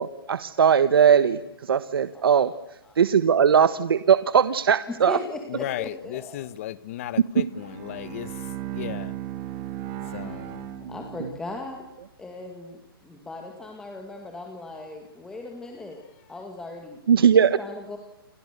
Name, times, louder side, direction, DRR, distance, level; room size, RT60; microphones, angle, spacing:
voice 1, 0.0-2.5 2.9-5.2 7.2-7.5 10.8-10.9 17.1-17.6, right 7 dB, 70° right, 1.3 m, -19 dB
voice 2, 2.1-2.5 2.8-3.0 4.9-6.5 10.1-10.5 10.9-11.8 12.2-16.0 16.3-17.0 17.6-18.0, left 2 dB, 5° left, 2.0 m, -38 dB
voice 3, 5.5-8.4 8.7-9.1 10.1-10.7, left 13 dB, 35° left, 1.3 m, -35 dB
Bowed string instrument, 7.5-11.6, right 12 dB, 25° right, 2.7 m, -36 dB
29.5 x 24.0 x 6.8 m
hypercardioid pair, 165°, 13 cm